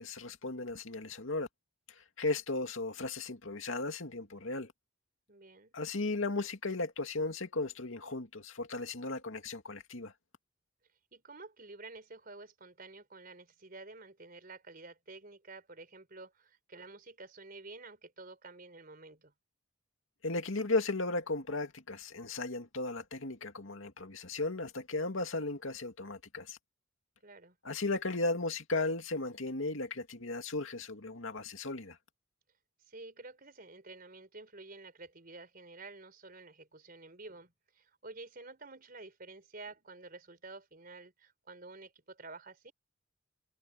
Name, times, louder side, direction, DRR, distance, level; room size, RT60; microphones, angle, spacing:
voice 1, 0.0-1.5 2.2-4.7 5.7-10.1 20.2-26.6 27.6-32.0, left 2 dB, 80° left, 2.3 m, -35 dB
voice 2, 5.3-5.7 11.1-19.3 27.2-27.6 32.8-42.7, right 3 dB, 45° right, 4.3 m, -50 dB
head